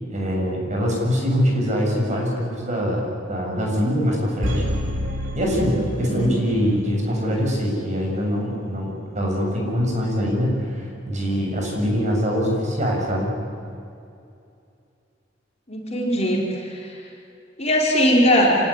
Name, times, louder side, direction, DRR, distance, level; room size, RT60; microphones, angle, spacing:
voice 1, 0.1-4.6 5.3-13.3, equal, 40° right, -1 dB, 7.4 m, -23 dB
sound 1, 4.4-6.6 6.9-7.0, equal, 85° right, 3.7 m, -28 dB
voice 2, 5.9-6.3 15.7-16.9 17.6-18.6, equal, 35° left, -2 dB, 4.8 m, -20 dB
27.0 x 19.0 x 10.0 m, 2.5 s
head